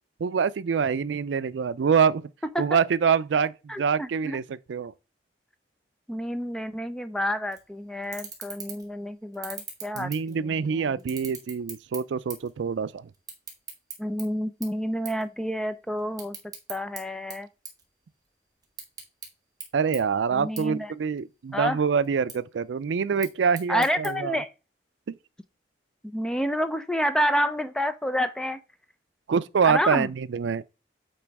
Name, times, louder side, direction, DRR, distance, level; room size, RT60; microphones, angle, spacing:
voice 1, 0.2-2.3 2.6-4.9 10.0-13.1 19.7-24.4 25.1-25.2 29.3-30.6, right 6 dB, 85° right, 0.4 m, -25 dB
voice 2, 3.7-4.4 6.1-11.0 14.0-16.4 16.7-17.5 20.3-20.9 21.5-21.8 23.7-24.5 26.0-28.6 29.6-30.1, equal, 5° left, 0.5 m, -29 dB
sound 1, 7.5-7.6 8.0-8.9 9.3-10.6 11.0-12.6 12.8-14.2 14.6-14.8 15.0-15.2 15.6-17.0 17.3-18.3 18.6-19.3 19.6-19.7 19.9-20.0 20.6-20.7 21.0-21.6 22.0-22.3 23.0-24.1, right 5 dB, 20° right, 1.7 m, -39 dB
8.5 x 3.0 x 4.7 m
head